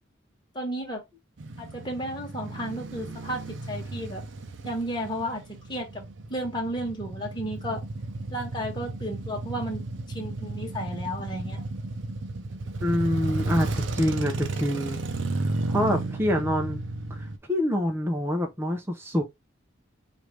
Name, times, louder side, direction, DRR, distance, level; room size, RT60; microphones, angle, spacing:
voice 1, 0.5-1.0 1.6-4.2 4.6-5.4 5.7-6.0 6.3-7.8 8.3-9.8 10.1-11.6, equal, 25° left, 1.4 m, -33 dB
Male speech man speaking / Motorcycle / Idling, 1.4-17.4, right 2 dB, 70° right, 0.6 m, -33 dB
voice 2, 12.8-15.0 15.3-15.4 15.7-16.8 17.1-19.2, equal, 10° right, 0.6 m, -26 dB
4.8 x 2.6 x 3.2 m
head